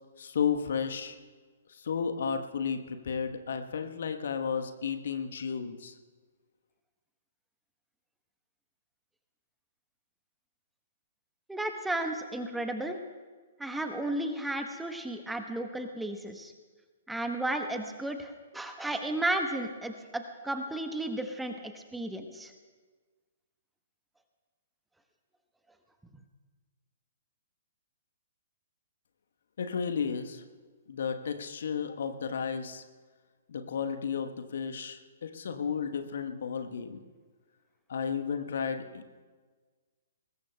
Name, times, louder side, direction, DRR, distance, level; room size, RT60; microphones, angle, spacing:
voice 1, 0.2-1.1 1.7-5.9 29.6-30.4 30.9-32.8 33.5-37.0 37.9-39.0, left 6 dB, 55° left, 7 dB, 1.1 m, -33 dB
voice 2, 11.5-13.0 13.6-16.5 17.1-22.5, right 1 dB, 5° right, 6 dB, 1.0 m, -33 dB
23.5 x 20.5 x 2.2 m, 1.4 s
figure-of-eight pair, 120°, 0 cm